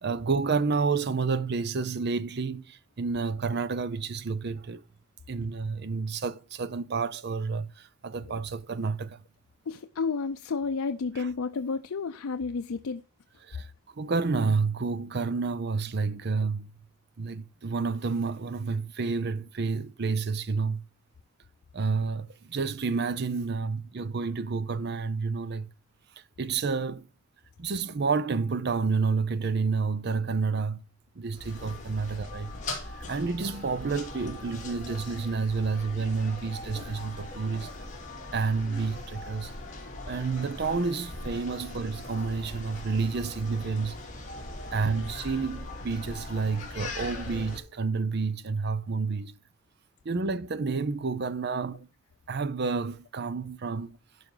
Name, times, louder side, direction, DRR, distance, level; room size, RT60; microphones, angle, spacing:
voice 1, 0.0-4.8 5.3-9.2 11.2-11.3 13.4-13.7 14.0-16.7 17.2-20.9 21.7-25.7 26.4-27.1 27.6-30.8 31.2-32.6 32.9-37.7 38.3-39.5 40.0-44.0 44.7-49.3 50.0-51.9 52.3-54.0, right 4 dB, 50° right, 0.6 m, -29 dB
voice 2, 9.7-13.0, left 4 dB, 90° left, 0.5 m, -31 dB
sound 1, 31.3-47.6, left 2 dB, 35° left, 2.6 m, -40 dB
12.0 x 5.2 x 3.9 m
head